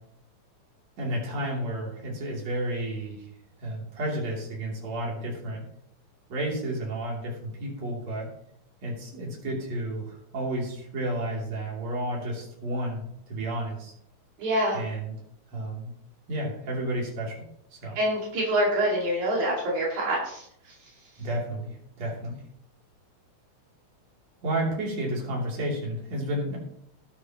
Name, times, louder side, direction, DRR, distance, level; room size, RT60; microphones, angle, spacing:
voice 1, 1.0-3.3 3.6-5.7 6.3-8.3 8.8-13.9 14.7-15.1 15.5-15.9 16.3-17.4 17.7-18.0 21.2-22.4 24.4-26.6, right 1 dB, 60° right, -3 dB, 4.4 m, -31 dB
voice 2, 14.4-14.8 18.0-20.7, right 1 dB, 80° right, -4 dB, 3.8 m, -26 dB
19.0 x 7.8 x 3.0 m, 0.71 s
omnidirectional pair, 3.4 m